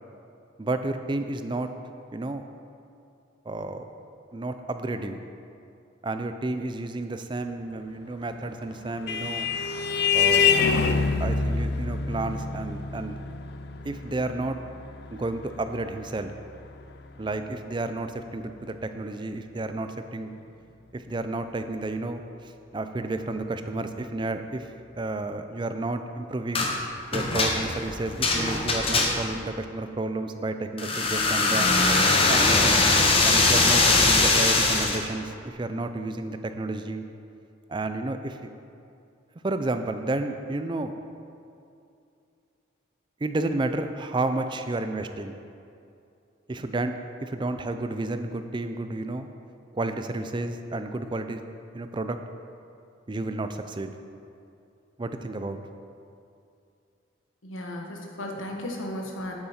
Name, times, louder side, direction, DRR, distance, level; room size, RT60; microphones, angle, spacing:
voice 1, 0.6-1.7 2.1-2.4 3.5-3.8 4.3-5.2 6.0-9.5 10.1-10.6 11.2-13.2 13.8-14.6 15.1-16.3 17.2-20.3 20.9-24.7 25.0-26.7 27.1-31.8 32.3-32.9 33.2-37.0 37.7-38.4 39.4-40.9 43.2-45.3 46.5-49.3 49.7-51.4 51.7-52.2 53.1-53.9 55.0-55.6, right 2 dB, 25° right, 8 dB, 0.4 m, -31 dB
Vehicle horn car horn honking, 8.4-17.4, left 5 dB, 55° left, 0.4 m, -27 dB
sound 1, 26.5-26.7 27.1-29.4 30.8-35.0, left 3 dB, 30° left, 0.9 m, -21 dB
voice 2, 57.4-59.3, left 1 dB, 85° left, 0 dB, 1.4 m, -35 dB
8.7 x 8.5 x 4.3 m, 2.6 s
head